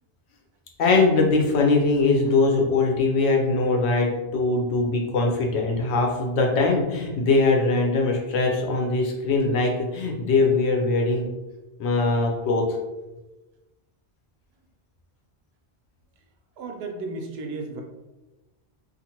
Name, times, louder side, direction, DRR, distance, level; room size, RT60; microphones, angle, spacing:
voice 1, 0.8-11.2 11.8-12.7, left 3 dB, 80° left, 0 dB, 0.9 m, -21 dB
voice 2, 16.6-17.8, right 3 dB, 75° right, 2 dB, 0.8 m, -33 dB
2.6 x 2.5 x 2.8 m, 1.1 s
omnidirectional pair, 1.1 m